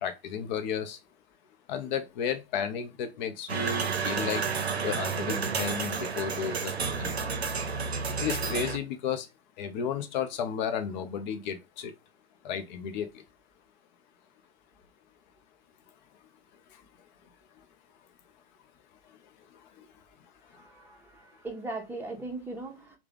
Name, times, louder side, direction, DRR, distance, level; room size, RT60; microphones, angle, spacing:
voice 1, 0.0-1.0 1.7-4.4 4.8-7.1 8.2-9.3 9.6-11.9 12.4-13.1, left 7 dB, 45° left, 0.7 m, -33 dB
sound 1, 3.5-8.8, right 5 dB, 90° right, 0.6 m, -31 dB
voice 2, 20.5-23.0, right 2 dB, 5° right, 0.9 m, -39 dB
3.3 x 2.4 x 3.6 m
figure-of-eight pair, 105°, 31 cm